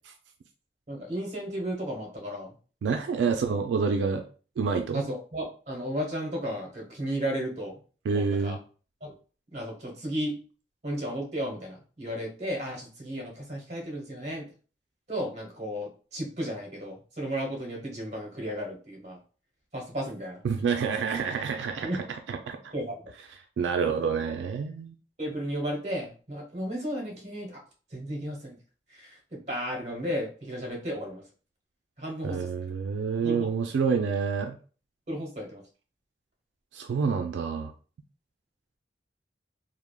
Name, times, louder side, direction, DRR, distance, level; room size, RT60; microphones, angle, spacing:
voice 1, 0.9-2.5 3.3-3.4 4.9-7.8 8.1-8.6 9.0-9.1 9.5-10.4 10.8-14.4 15.1-19.2 19.7-20.4 21.8-22.0 22.7-23.0 23.9-24.1 25.2-27.6 27.9-28.6 28.9-31.2 32.0-32.5 33.2-33.5 35.1-35.6, equal, 40° right, -1 dB, 1.0 m, -34 dB
voice 2, 2.8-4.2 4.6-5.0 8.1-8.6 20.4-21.9 22.3-22.7 23.6-24.9 32.2-34.6 36.7-37.7, right 5 dB, 90° right, 5 dB, 0.3 m, -28 dB
3.3 x 2.0 x 2.2 m, 0.38 s
head